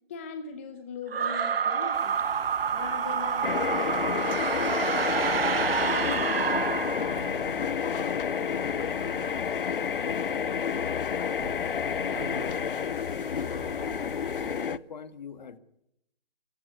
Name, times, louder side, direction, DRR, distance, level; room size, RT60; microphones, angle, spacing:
voice 1, 0.1-2.2 2.5-4.9 5.8-6.7, left 5 dB, 15° left, 7 dB, 0.8 m, -40 dB
sound 1, 1.1-7.5, right 6 dB, 75° right, 1.0 m, -28 dB
sound 2, 1.9-14.6, right 5 dB, 20° right, 2.1 m, -46 dB
sound 3, 3.4-14.8, left 7 dB, 65° left, 0.8 m, -30 dB
voice 2, 14.2-15.6, left 6 dB, 50° left, 12 dB, 1.7 m, -43 dB
25.5 x 15.0 x 9.4 m, 0.80 s
hypercardioid pair, 170°, 29 cm